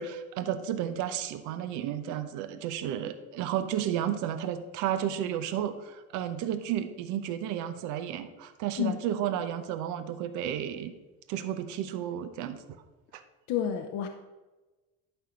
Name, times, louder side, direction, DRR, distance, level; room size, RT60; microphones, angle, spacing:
voice 1, 0.0-10.9 11.3-12.6 13.1-13.2, right 10 dB, 75° right, 10 dB, 0.9 m, -32 dB
voice 2, 13.5-14.1, left 9 dB, 70° left, 5 dB, 0.7 m, -29 dB
11.0 x 4.5 x 5.1 m, 1.2 s
cardioid pair, 105°, 30 cm